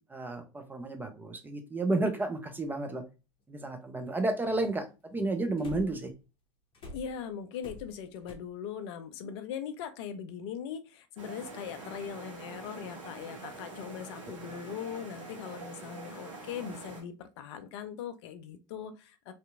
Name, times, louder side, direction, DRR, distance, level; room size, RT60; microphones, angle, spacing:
voice 1, 0.0-3.0 3.5-6.1, right 2 dB, 10° right, 5 dB, 0.5 m, -32 dB
sound 1, 2.6-2.7 5.6-6.1 6.7-8.3, left 1 dB, 35° left, 0.8 m, -46 dB
voice 2, 6.9-19.3, left 8 dB, 60° left, 10 dB, 0.4 m, -40 dB
sound 2, 11.2-17.0, right 3 dB, 80° right, 0.8 m, -45 dB
2.7 x 2.5 x 2.2 m, 0.29 s
figure-of-eight pair, 75°, 16 cm